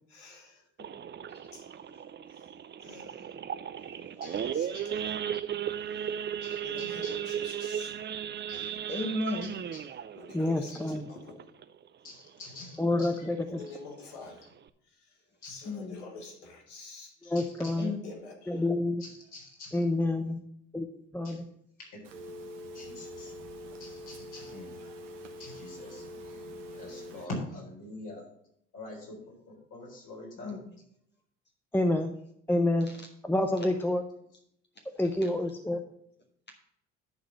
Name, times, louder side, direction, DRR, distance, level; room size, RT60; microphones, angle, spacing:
voice 1, 0.1-0.6 1.5-1.8 2.3-2.4 2.8-3.3 4.1-5.0 5.9-6.1 6.6-7.9 10.1-11.4 13.5-14.5 15.0-15.2 15.4-17.1 18.0-18.6, left 3 dB, 75° left, 2 dB, 2.0 m, -47 dB
Idling / Accelerating revving vroom / Sawing, 0.8-11.9 12.3-12.5 12.7-12.8 13.3-13.6 14.1-14.2 14.4-14.7, right 9 dB, 30° right, 0.6 m, -36 dB
voice 2, 4.2-4.9 6.4-7.1 8.5-8.7 9.4-9.8 10.7-10.8 12.0-13.3 15.4-15.6 17.2-17.8 19.0-19.8 21.2-21.4 22.7-23.3 23.8-24.9 25.4-26.4 26.7-28.2 28.7-29.2 29.5-30.6 33.4-33.5, left 2 dB, 55° left, -2 dB, 4.1 m, -45 dB
voice 3, 8.9-9.5 15.6-16.0 17.8-18.0 30.4-30.6, left 2 dB, 30° left, 1 dB, 1.5 m, -33 dB
voice 4, 10.3-11.1 12.8-13.6 17.2-17.9 18.5-19.0 19.7-20.4 20.7-20.9 21.1-21.4 31.7-32.1 32.5-32.9 33.2-34.0 35.0-35.8, left 1 dB, 5° left, 6 dB, 0.7 m, -28 dB
Telephone, 22.0-27.3, equal, 80° right, 1.2 m, -44 dB
10.5 x 4.0 x 7.5 m, 0.73 s
hypercardioid pair, 55°, 36 cm